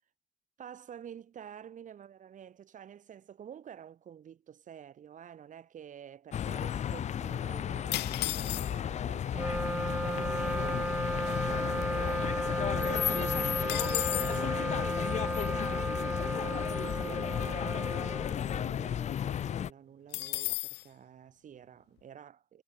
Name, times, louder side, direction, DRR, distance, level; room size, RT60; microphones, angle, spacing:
voice 1, 0.6-15.7 16.2-22.6, right 9 dB, 50° right, 4.5 m, -49 dB
sound 1, 6.3-19.7, left 9 dB, 45° left, 0.7 m, -33 dB
sound 2, 7.9-9.0 9.8-9.9 10.1-10.4 10.9-12.3 12.7-12.8 13.1-14.5 20.1-20.9, left 19 dB, 80° left, 0.9 m, -35 dB
Wind instrument woodwind instrument, 9.3-18.9, right 1 dB, 5° right, 1.2 m, -34 dB
cardioid pair, 110°, 17 cm